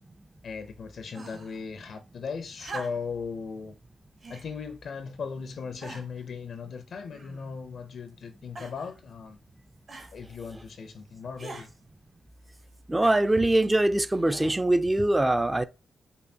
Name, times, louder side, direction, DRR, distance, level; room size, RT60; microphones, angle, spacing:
voice 1, 0.4-3.8 4.3-9.4 10.1-11.7, left 5 dB, 70° left, 0.5 m, -38 dB
sound 1, 1.1-1.6 2.6-3.2 4.2-4.5 5.2-5.3 5.8-6.3 7.1-7.6 8.6-8.9 9.9-10.1 11.4-11.7 13.0-13.5 14.5-14.6, right 3 dB, 55° right, 1.2 m, -43 dB
voice 2, 12.9-15.6, right 1 dB, 20° right, 0.4 m, -23 dB
5.3 x 2.2 x 2.7 m
supercardioid pair, 50°, 0 cm